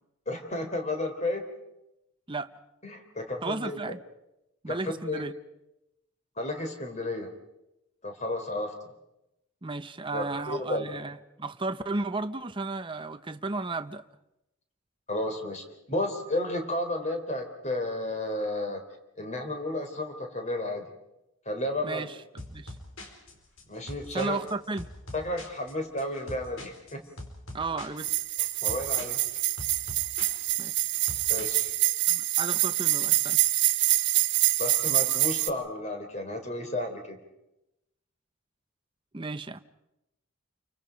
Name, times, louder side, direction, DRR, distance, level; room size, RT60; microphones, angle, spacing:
voice 1, 0.3-1.4 2.8-4.0 4.7-5.2 6.4-7.3 8.0-8.7 10.1-11.0 15.1-18.8 19.2-20.9 21.5-22.1 23.7-24.4 25.1-27.0 28.6-29.2 31.3-31.7 34.6-37.2, left 1 dB, 35° left, 3.8 m, -32 dB
voice 2, 3.4-4.0 4.6-5.3 9.6-14.0 21.8-22.2 22.5-22.7 24.1-24.9 27.5-28.1 30.6-30.9 32.1-33.4 39.1-39.6, right 3 dB, 25° right, 0.8 m, -34 dB
sound 1, 22.4-31.9, left 1 dB, 75° left, 4.7 m, -44 dB
sound 2, 28.0-35.5, right 15 dB, 55° right, 1.1 m, -26 dB
29.0 x 24.5 x 5.2 m
head